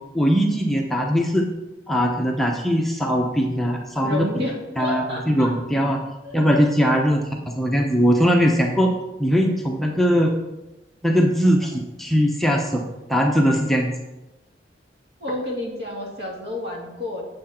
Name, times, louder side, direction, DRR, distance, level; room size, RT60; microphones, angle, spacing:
voice 1, 0.1-1.5 1.9-4.3 4.8-6.0 6.3-7.2 7.5-8.9 9.2-10.3 11.0-12.8 13.1-13.9, equal, ahead, 0 dB, 0.8 m, -20 dB
voice 2, 4.0-5.5 6.2-6.3 15.2-17.2, left 1 dB, 65° right, -2 dB, 2.5 m, -30 dB
8.2 x 7.6 x 4.4 m, 1.0 s
head